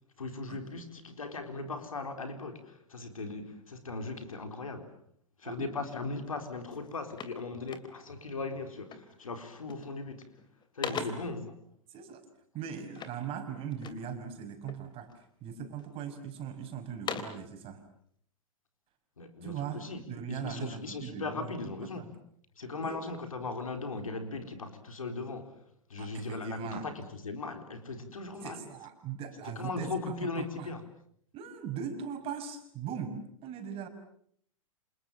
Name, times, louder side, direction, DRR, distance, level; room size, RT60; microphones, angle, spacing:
voice 1, 0.2-4.9 5.4-10.3 10.7-11.6 19.2-20.0 20.3-22.1 22.6-25.5 25.9-28.6 29.4-30.8, left 3 dB, 80° left, 7 dB, 4.2 m, -38 dB
sound 1, 6.3-6.4 6.7-8.3 8.9-9.2 9.5-10.0 10.4-11.4 12.9-14.1 14.6-15.3 15.8-16.5 16.8-17.5, left 6 dB, 25° left, 3.1 m, -41 dB
voice 2, 11.9-12.3 12.5-17.8 19.4-22.1 22.8-23.1 26.0-26.9 28.4-30.7 31.3-33.9, right 7 dB, 35° right, 7 dB, 5.9 m, -40 dB
29.5 x 27.0 x 7.0 m, 0.64 s
figure-of-eight pair, 105°, 17 cm